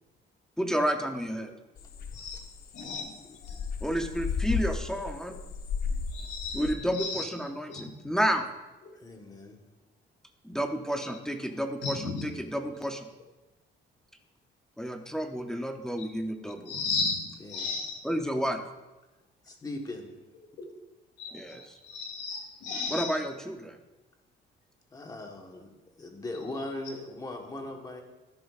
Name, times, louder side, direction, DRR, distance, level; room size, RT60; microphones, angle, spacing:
voice 1, 0.6-1.5 3.8-5.4 6.5-8.5 10.4-13.1 14.8-16.7 18.0-18.6 21.3-21.8 22.9-23.8, equal, 5° left, 4 dB, 0.5 m, -31 dB
sound 1, 1.8-6.7, left 5 dB, 50° left, 0.8 m, -34 dB
voice 2, 2.1-2.4 2.7-3.1 3.4-3.6 6.1-7.3 7.7-7.9 11.8-12.3 16.0-16.1 16.7-18.0 20.6-20.7 21.2-23.2 26.9-27.1, left 4 dB, 70° left, 2 dB, 2.3 m, -35 dB
voice 3, 8.9-9.6 17.4-17.7 19.4-20.1 24.9-25.7 26.0-28.0, left 2 dB, 20° left, 2 dB, 1.2 m, -39 dB
13.0 x 10.5 x 2.4 m, 1.1 s
cardioid pair, 170°, 20 cm